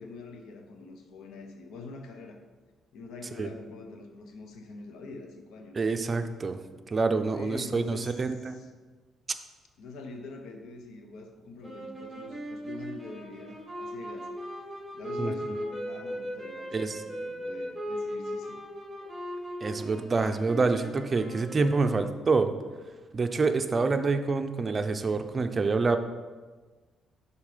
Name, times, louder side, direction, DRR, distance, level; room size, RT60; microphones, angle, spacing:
voice 1, 0.0-2.4 2.9-5.8 7.3-8.7 9.8-14.3 14.9-18.6, left 3 dB, 80° left, 4 dB, 0.8 m, -44 dB
voice 2, 5.7-6.6 6.9-8.6 15.2-15.3 16.7-17.0 19.6-22.5 23.1-26.0, right 4 dB, 35° right, 8 dB, 0.6 m, -27 dB
sound 1, 11.6-22.4, equal, 10° right, 2.3 m, -38 dB
6.9 x 4.5 x 5.0 m, 1.4 s
cardioid pair, 90°, 0 cm